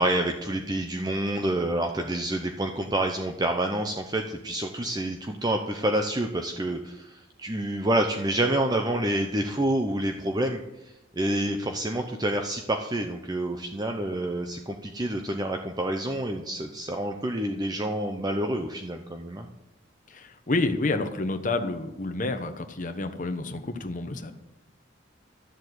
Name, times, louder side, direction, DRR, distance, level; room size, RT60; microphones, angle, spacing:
voice 1, 0.0-10.6 11.2-19.5, right 1 dB, 20° right, 4 dB, 0.7 m, -28 dB
voice 2, 20.1-24.3, left 2 dB, 40° left, 7 dB, 1.1 m, -29 dB
13.0 x 7.3 x 8.0 m, 0.98 s
head